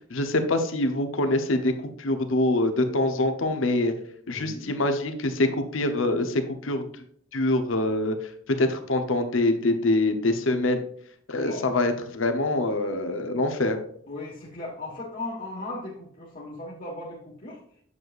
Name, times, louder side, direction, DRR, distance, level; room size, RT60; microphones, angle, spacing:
voice 1, 0.1-1.7 2.0-3.9 4.3-6.9 7.3-8.2 8.5-10.8 11.3-13.8, left 2 dB, 80° left, 7 dB, 0.9 m, -24 dB
voice 2, 4.3-4.8 11.3-11.7 14.1-17.6, left 2 dB, 45° left, -6 dB, 1.5 m, -37 dB
7.8 x 7.5 x 2.5 m, 0.64 s
head